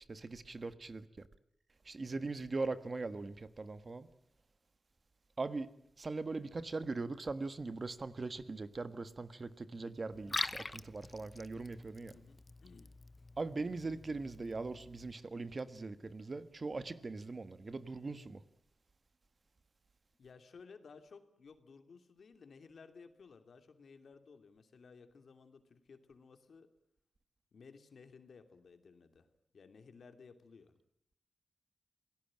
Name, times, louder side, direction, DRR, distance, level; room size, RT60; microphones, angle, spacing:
voice 1, 0.1-1.1 1.8-4.1 5.4-5.7 6.0-12.1 13.4-18.4, right 3 dB, 40° right, 1.5 m, -40 dB
Liquid, 10.1-15.1, left 2 dB, 25° left, 0.9 m, -44 dB
voice 2, 12.0-12.9 20.2-26.7 27.5-29.3 29.5-30.8, left 5 dB, 70° left, 2.7 m, -57 dB
27.5 x 18.0 x 8.8 m
wide cardioid pair, 95°, 0 cm